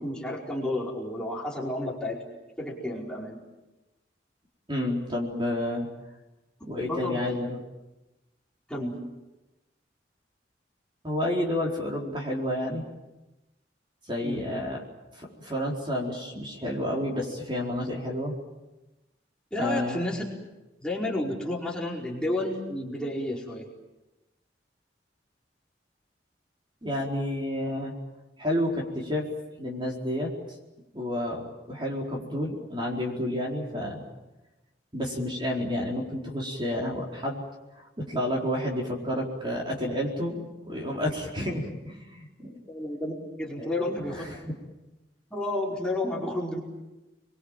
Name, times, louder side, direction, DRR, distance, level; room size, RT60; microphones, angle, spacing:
voice 1, 0.0-2.2 2.6-3.4 6.8-7.3 8.7-9.0 14.2-14.4 19.5-20.2 20.8-23.7 42.7-44.3 45.3-46.6, left 1 dB, 5° left, -4 dB, 4.8 m, -31 dB
voice 2, 4.7-5.8 6.6-7.6 11.0-12.8 14.1-14.8 15.1-18.3 19.6-20.0 26.8-28.0 28.4-29.3 29.6-30.3 30.9-34.0 34.9-37.4 37.7-42.6 43.6-43.7 44.1-44.4, left 1 dB, 25° right, -1 dB, 4.4 m, -30 dB
30.0 x 22.5 x 7.5 m, 1.0 s
head